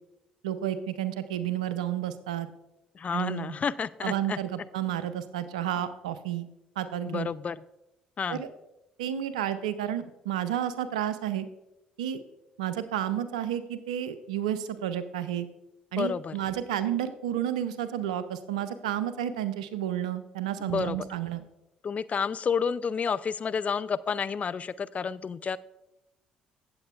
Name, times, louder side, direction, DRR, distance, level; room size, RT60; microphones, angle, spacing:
voice 1, 0.4-2.5 3.1-3.5 4.0-6.5 6.8-7.3 8.3-8.5 9.0-11.5 12.0-12.2 12.6-15.5 15.9-21.4, right 11 dB, 80° right, 13 dB, 0.5 m, -31 dB
voice 2, 2.9-4.4 7.0-7.6 8.2-8.4 15.9-16.3 20.6-21.1 21.8-25.6, left 6 dB, 35° left, 15 dB, 0.3 m, -30 dB
16.5 x 7.6 x 2.3 m, 0.91 s
hypercardioid pair, 50°, 4 cm